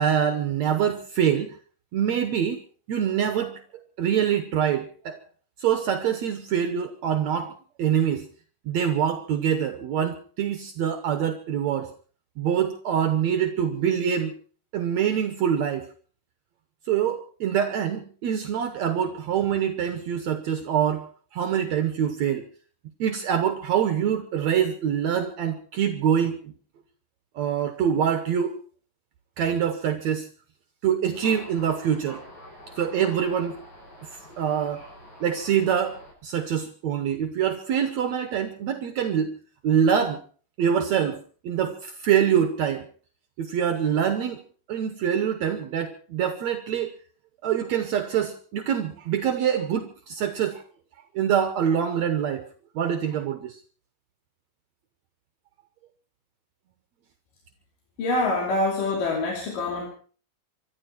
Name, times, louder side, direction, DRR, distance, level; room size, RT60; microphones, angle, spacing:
voice 1, 0.0-1.6 1.9-2.6 2.9-3.6 4.0-5.2 5.6-8.3 8.7-11.9 12.4-14.4 14.7-15.9 16.9-21.1 21.3-22.5 23.0-26.5 27.4-28.6 29.4-30.3 30.8-32.2 32.8-33.6 34.4-34.8 35.2-39.3 39.6-40.2 40.6-42.9 43.4-44.4 44.7-46.9 47.4-50.6 51.2-52.4 52.8-53.6, right 8 dB, 65° right, 8 dB, 2.1 m, -25 dB
Thunder, 31.1-36.1, left 1 dB, 45° left, 7.9 m, -46 dB
voice 2, 58.0-59.9, left 2 dB, 90° left, 0 dB, 4.4 m, -25 dB
25.5 x 12.5 x 4.5 m, 0.42 s
omnidirectional pair, 3.7 m